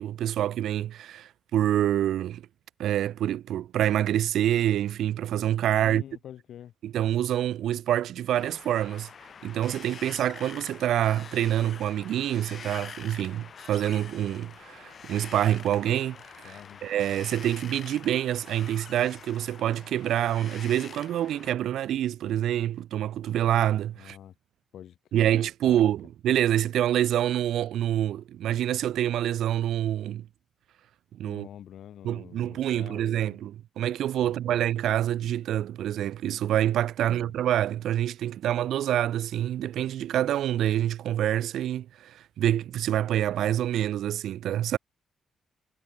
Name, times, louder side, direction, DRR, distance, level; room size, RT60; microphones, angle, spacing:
voice 1, 0.0-2.4 2.8-6.0 6.8-9.1 9.4-24.2 25.1-30.3 31.2-31.5 32.0-44.8, right 11 dB, 85° right, 0.4 m, -26 dB
voice 2, 5.8-6.7 16.4-16.8 24.0-24.3 24.7-25.3 25.6-25.9 31.3-33.4 34.2-34.7 37.1-37.4, left 10 dB, 75° left, 2.3 m, -46 dB
Wind, 8.4-21.5, left 6 dB, 50° left, 1.2 m, -46 dB
cardioid pair, 110°, 0 cm